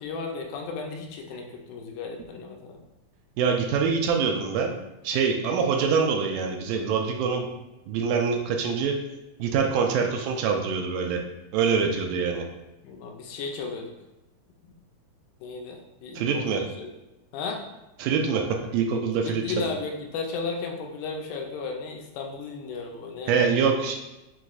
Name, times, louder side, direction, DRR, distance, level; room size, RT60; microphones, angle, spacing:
voice 1, 0.0-2.8 12.8-13.9 14.6-14.7 15.4-16.9 17.3-17.6 19.2-23.7, left 4 dB, 85° left, 2 dB, 2.2 m, -34 dB
voice 2, 3.4-4.7 5.0-7.5 7.9-9.0 9.4-11.2 11.5-12.4 16.2-16.6 18.0-19.7 23.3-24.0, right 5 dB, 85° right, 3 dB, 2.2 m, -24 dB
6.0 x 3.0 x 2.4 m, 0.98 s
omnidirectional pair, 3.7 m